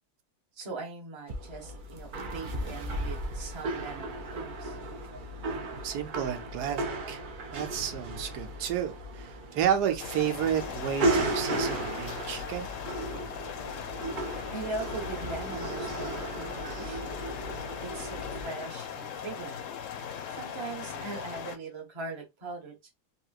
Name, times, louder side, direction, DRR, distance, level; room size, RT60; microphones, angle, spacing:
voice 1, 0.5-4.8 14.5-17.3 17.8-19.6 20.4-22.9, right 3 dB, 25° right, 0.8 m, -41 dB
sound 1, 1.3-18.4, right 2 dB, 65° right, 0.5 m, -35 dB
voice 2, 5.8-7.2 7.5-12.7, right 9 dB, 80° right, 1.2 m, -31 dB
sound 2, 10.0-21.6, left 8 dB, 65° left, 0.8 m, -39 dB
3.4 x 2.8 x 2.3 m
omnidirectional pair, 1.7 m